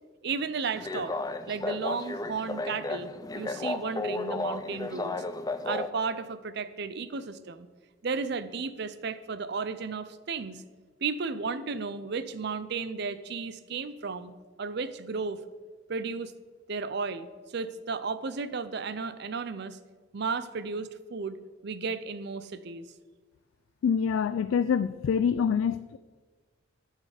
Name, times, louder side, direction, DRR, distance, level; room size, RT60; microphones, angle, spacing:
voice 1, 0.2-1.1 1.5-5.2 5.6-7.7 8.0-10.6 11.0-14.3 14.6-15.4 15.9-16.3 16.7-17.3 17.5-19.8 20.1-22.9, right 4 dB, 55° right, 13 dB, 0.5 m, -34 dB
sound 1, 0.7-5.9, left 2 dB, 20° left, 0.4 m, -33 dB
voice 2, 23.8-26.0, left 7 dB, 85° left, 13 dB, 0.3 m, -26 dB
11.0 x 6.5 x 4.9 m, 1.4 s
head